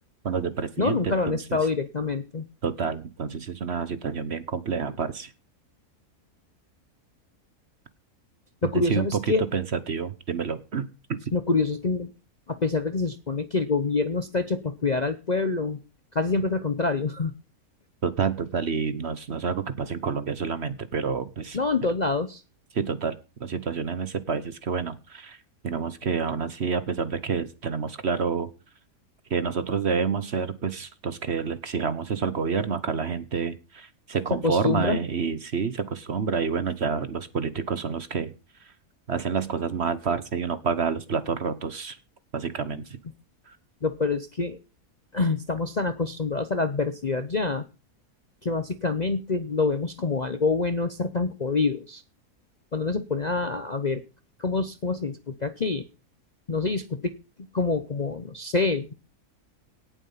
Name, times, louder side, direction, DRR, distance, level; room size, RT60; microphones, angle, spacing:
voice 1, 0.2-1.6 2.6-5.3 8.6-11.3 18.0-21.6 22.7-25.4 25.6-28.5 29.3-38.3 38.6-38.7 39.1-42.0 42.3-43.0 43.5-43.6, right 6 dB, 50° right, 14 dB, 1.2 m, -28 dB
voice 2, 0.8-2.5 8.6-9.4 11.3-12.1 12.5-15.8 16.1-17.3 21.5-22.4 34.4-35.0 43.8-44.6 45.1-47.6 48.4-52.0 52.7-54.0 54.4-55.8 56.5-57.1 57.5-58.9, left 3 dB, 40° left, 10 dB, 0.7 m, -26 dB
18.0 x 7.4 x 5.6 m, 0.31 s
omnidirectional pair, 1.6 m